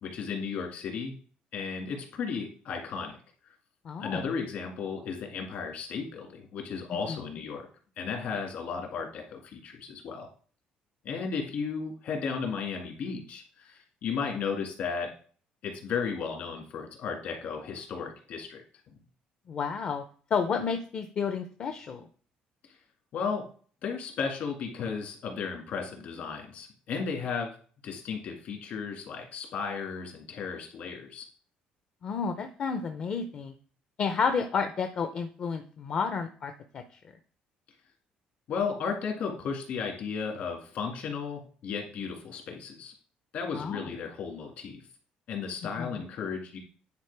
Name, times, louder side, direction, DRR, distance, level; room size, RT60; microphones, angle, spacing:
voice 1, 0.0-1.1 1.5-3.2 4.0-7.7 8.0-10.3 11.0-15.1 15.6-18.6 23.1-23.4 23.8-27.5 27.8-31.2 38.5-42.9 43.3-44.8 45.3-46.6, left 5 dB, 60° left, 2 dB, 1.9 m, -34 dB
voice 2, 3.9-4.3 7.1-7.2 19.5-20.0 20.3-22.0 32.0-33.5 34.0-36.8 43.5-43.9 45.8-46.0, left 6 dB, 40° left, 6 dB, 0.5 m, -31 dB
9.6 x 4.2 x 3.3 m, 0.43 s
cardioid pair, 150°, 3 cm